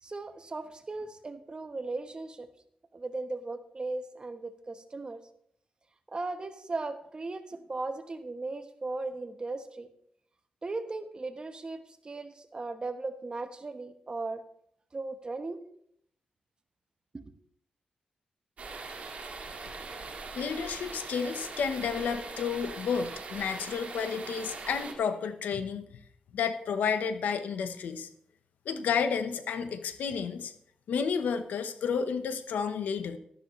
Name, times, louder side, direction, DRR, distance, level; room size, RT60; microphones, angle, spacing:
voice 1, 0.0-2.5 2.9-5.2 6.1-9.9 10.6-14.4 14.9-15.6 17.1-17.3, right 3 dB, 35° right, 8 dB, 1.1 m, -37 dB
sound 1, 18.6-24.9, right 3 dB, 60° right, 2.2 m, -41 dB
voice 2, 20.3-25.8 26.3-28.1 28.7-30.5 30.9-33.2, left 6 dB, 90° left, 9 dB, 0.9 m, -31 dB
13.0 x 11.0 x 3.1 m, 0.69 s
cardioid pair, 80°, 3 cm